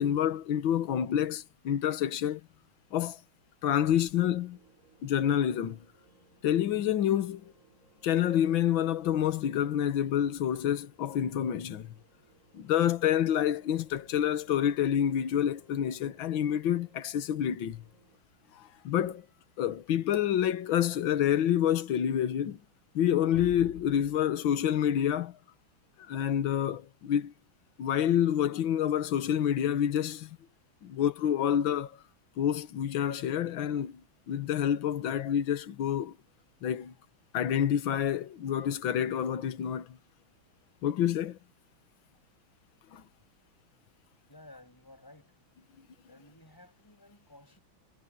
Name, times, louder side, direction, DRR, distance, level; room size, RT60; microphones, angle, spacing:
voice 1, 0.0-2.4 2.9-3.2 3.6-4.6 5.0-5.8 6.4-7.5 8.0-11.9 12.5-17.8 18.5-19.3 19.6-22.6 23.0-25.4 26.1-27.3 27.8-30.3 30.8-32.0 32.4-34.0 34.3-36.2 36.6-36.9 37.3-40.0 40.8-41.4 42.9-43.0, left 10 dB, 75° left, 1.9 m, -28 dB
sound 1, 4.5-18.2, right 3 dB, 40° right, 8.2 m, -63 dB
voice 2, 44.3-45.3 46.0-47.6, left 1 dB, 10° left, 6.8 m, -54 dB
omnidirectional pair, 2.2 m